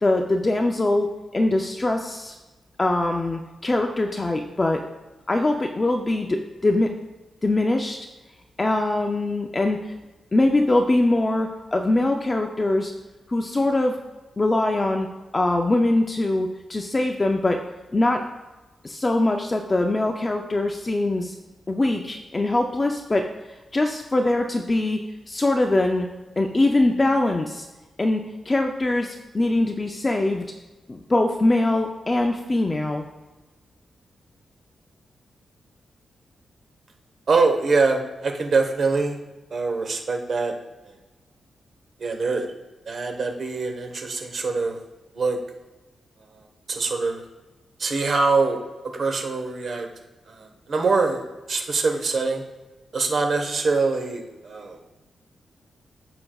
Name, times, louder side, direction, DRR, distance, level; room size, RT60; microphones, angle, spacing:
voice 1, 0.0-2.4 2.8-4.9 5.3-6.9 7.4-8.0 8.6-9.9 10.3-12.9 13.3-14.0 14.4-15.1 15.3-17.6 17.9-18.2 18.8-21.3 21.7-25.0 25.3-26.1 26.4-27.7 28.0-30.5 30.9-33.1, left 2 dB, 20° left, 3 dB, 0.5 m, -22 dB
voice 2, 37.3-39.2 39.5-40.5 40.9-41.0 42.0-42.5 42.9-44.8 45.1-45.4 46.3-47.2 47.8-49.9 50.3-51.2 51.5-52.4 52.9-54.8, right 4 dB, 50° right, 4 dB, 1.1 m, -24 dB
14.0 x 5.8 x 2.3 m, 1.1 s
wide cardioid pair, 160°, 0 cm